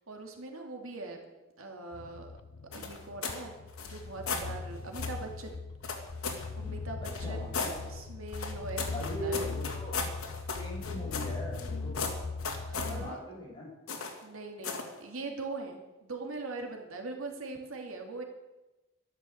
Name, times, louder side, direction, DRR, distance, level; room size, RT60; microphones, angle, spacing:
voice 1, 0.1-1.2 1.6-2.3 2.7-5.6 6.6-9.5 12.7-13.2 14.2-18.2, right 3 dB, 80° right, 3 dB, 2.6 m, -41 dB
sound 1, 1.9-13.1, left 4 dB, 70° left, 0.6 m, -40 dB
sound 2, 2.7-3.4 3.7-4.5 4.9-5.2 5.8-6.5 7.0-7.8 8.3-11.7 11.9-13.0 13.9-14.2 14.6-14.9, left 5 dB, 90° left, 2.5 m, -36 dB
voice 2, 7.2-7.8 8.9-10.0 10.6-12.1 12.7-13.7, equal, 20° left, -3 dB, 6.2 m, -40 dB
12.5 x 12.0 x 7.9 m, 1.0 s
head